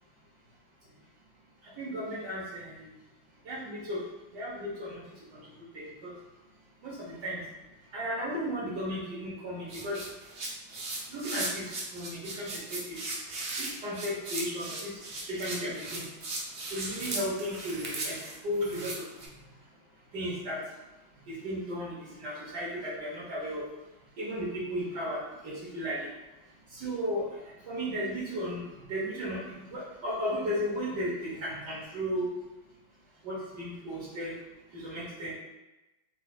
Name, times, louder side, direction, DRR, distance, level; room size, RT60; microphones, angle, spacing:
voice 1, 1.8-2.9 3.4-4.0 4.3-5.0 5.3-6.1 6.8-7.4 7.9-10.0 11.1-13.0 13.6-16.1 16.7-18.2 18.4-19.1 20.1-20.6 21.3-23.6 24.2-26.1 26.7-32.3 33.2-34.3 34.7-35.3, equal, 60° right, -7 dB, 1.5 m, -35 dB
sound 1, 9.7-19.3, right 2 dB, 90° right, 0.5 m, -37 dB
4.5 x 3.1 x 2.3 m, 1.0 s
omnidirectional pair, 2.2 m